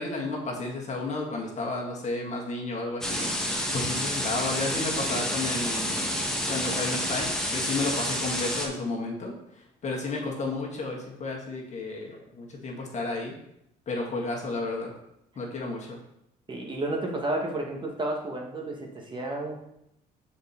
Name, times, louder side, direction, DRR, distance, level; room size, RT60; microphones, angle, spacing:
voice 1, 0.0-6.1 6.5-13.3 13.9-14.9 15.4-16.0, left 2 dB, 45° left, -1 dB, 1.8 m, -32 dB
sound 1, 3.0-8.7, equal, 5° left, 1.2 m, -29 dB
voice 2, 16.5-19.6, right 2 dB, 30° right, 0 dB, 1.3 m, -31 dB
6.2 x 4.5 x 4.3 m, 0.81 s
cardioid pair, 110°, 17 cm